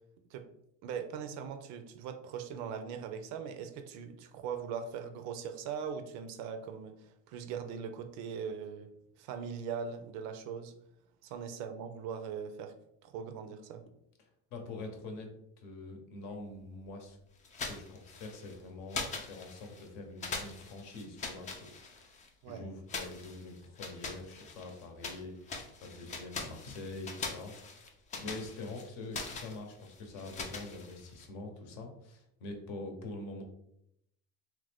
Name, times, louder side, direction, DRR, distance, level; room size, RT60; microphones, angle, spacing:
voice 1, 0.8-8.9 9.2-10.7 11.2-12.7 13.0-13.8 22.4-22.6, right 7 dB, 55° right, 7 dB, 0.4 m, -40 dB
voice 2, 14.2-17.2 17.7-33.4, left 2 dB, 60° left, 4 dB, 0.9 m, -45 dB
sound 1, 17.4-18.6 18.9-19.9 20.2-22.3 22.9-25.2 25.5-31.3, left 4 dB, 20° left, 0.4 m, -42 dB
3.0 x 2.5 x 3.3 m, 0.76 s
supercardioid pair, 135°, 34 cm